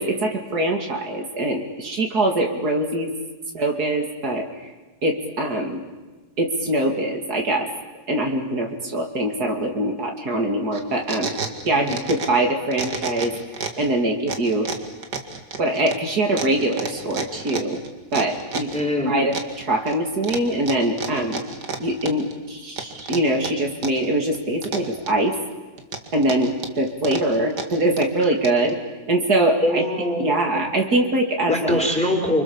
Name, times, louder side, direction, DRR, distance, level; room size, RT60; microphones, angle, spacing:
voice 1, 0.0-3.1 3.5-4.7 5.0-5.8 6.4-7.7 8.1-11.4 11.6-13.3 13.8-14.7 15.6-17.8 18.1-18.7 19.0-21.4 21.8-25.4 26.1-28.8 29.1-29.8 30.2-31.8, right 1 dB, 75° right, 2 dB, 3.1 m, -23 dB
sound 1, 10.7-12.4 12.7-13.9 14.3-18.8 19.3-20.0 20.2-22.3 22.8-24.1 24.3-25.3 25.8-28.7, right 4 dB, 90° right, 2.5 m, -31 dB
voice 2, 18.7-19.1 28.3-28.4 29.6-30.5 31.5-32.4, left 1 dB, 5° left, 1 dB, 4.3 m, -23 dB
30.0 x 25.5 x 7.1 m, 1.2 s
omnidirectional pair, 1.7 m